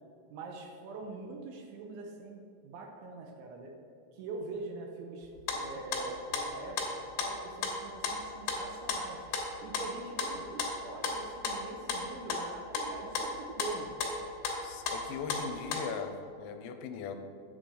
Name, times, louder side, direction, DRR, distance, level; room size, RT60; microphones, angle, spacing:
voice 1, 0.3-3.7 4.1-9.3 9.6-13.9, right 3 dB, 80° right, 1 dB, 3.0 m, -44 dB
sound 1, 5.2-6.1 6.3-6.9 7.2-7.8 8.0-9.5 9.7-12.9 13.2-13.7 14.0-14.6 14.9-15.8, left 4 dB, 65° left, 3.1 m, -34 dB
voice 2, 14.6-17.2, left 6 dB, 90° left, 7 dB, 3.3 m, -39 dB
10.5 x 7.7 x 4.7 m, 2.4 s
omnidirectional pair, 5.8 m